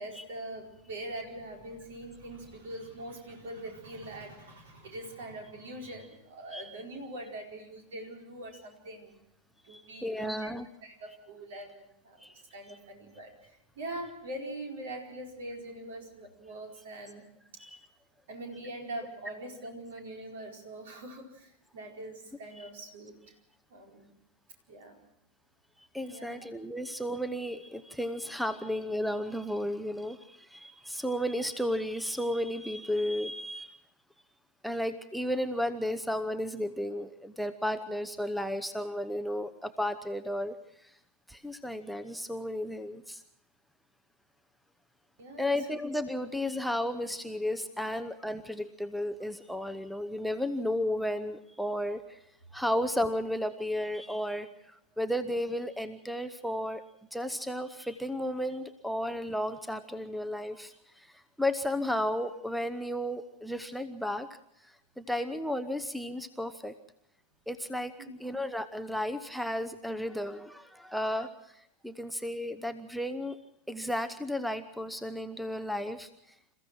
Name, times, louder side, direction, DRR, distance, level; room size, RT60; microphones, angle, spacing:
voice 1, 0.0-9.1 9.6-17.2 18.3-23.3 23.7-24.1 24.7-25.0 26.1-26.4 45.2-45.5 68.0-68.4, right 1 dB, 60° right, 1 dB, 4.6 m, -43 dB
voice 2, 9.7-10.7 12.2-12.4 17.6-17.8 25.8-33.8 34.6-41.0 41.3-43.2 45.4-52.2 52.5-56.8 57.1-64.3 64.6-66.8 67.5-67.9 68.2-73.4 73.7-76.1, left 1 dB, ahead, 7 dB, 0.8 m, -33 dB
28.0 x 15.0 x 6.1 m, 0.77 s
figure-of-eight pair, 90°, 0 cm